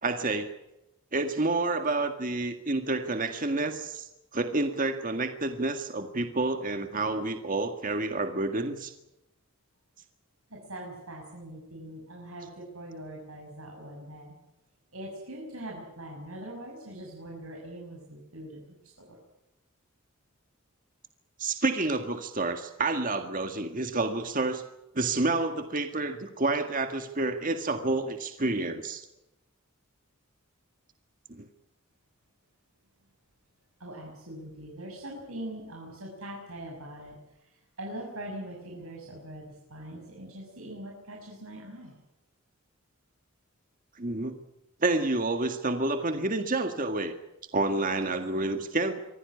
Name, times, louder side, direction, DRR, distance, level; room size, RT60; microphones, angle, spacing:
voice 1, 0.0-0.5 1.1-8.9 21.4-24.6 25.0-29.1 31.3-31.5 44.0-44.3 44.8-47.1 47.5-49.0, right 2 dB, 40° right, 7 dB, 1.8 m, -29 dB
voice 2, 10.5-14.3 14.9-19.2 33.8-42.0, right 1 dB, 80° right, -1 dB, 6.4 m, -42 dB
25.0 x 16.0 x 9.8 m, 0.90 s
head